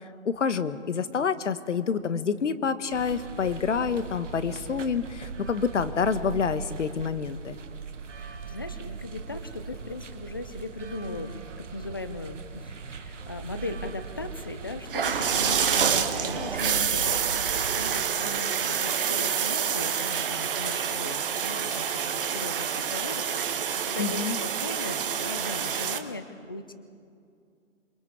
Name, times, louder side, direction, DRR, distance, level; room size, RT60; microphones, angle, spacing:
voice 1, 0.2-7.6 24.0-24.4, left 6 dB, 65° left, 12 dB, 1.3 m, -28 dB
sound 1, 2.9-17.9, right 5 dB, 65° right, 1.7 m, -40 dB
voice 2, 8.1-23.6 23.8-26.7, left 2 dB, 20° left, 10 dB, 0.5 m, -38 dB
sound 2, 14.9-26.0, right 7 dB, 40° right, 1.4 m, -27 dB
27.5 x 21.5 x 4.9 m, 2.3 s
hypercardioid pair, 155°, 39 cm